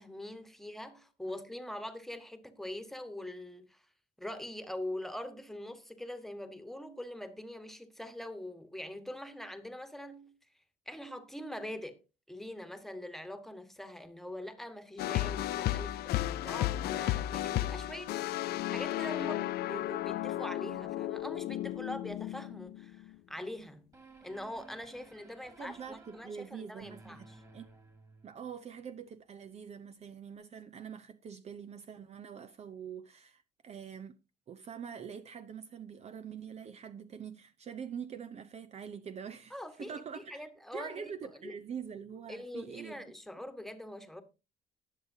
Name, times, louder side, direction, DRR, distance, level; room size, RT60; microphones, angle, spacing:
voice 1, 0.0-3.9 4.2-10.4 10.8-12.0 12.3-18.1 18.5-23.9 24.2-27.4 39.5-40.0 40.3-41.1 41.4-41.6 42.3-44.2, left 1 dB, ahead, 1.4 m, -43 dB
sound 1, 15.0-23.2, left 14 dB, 70° left, 0.5 m, -34 dB
sound 2, 23.9-28.6, right 2 dB, 20° right, 2.5 m, -56 dB
voice 2, 25.6-27.2 27.5-27.7 28.2-34.2 34.5-40.5 40.7-43.0, right 7 dB, 40° right, 0.6 m, -44 dB
19.0 x 6.6 x 2.8 m
cardioid pair, 110°, 17 cm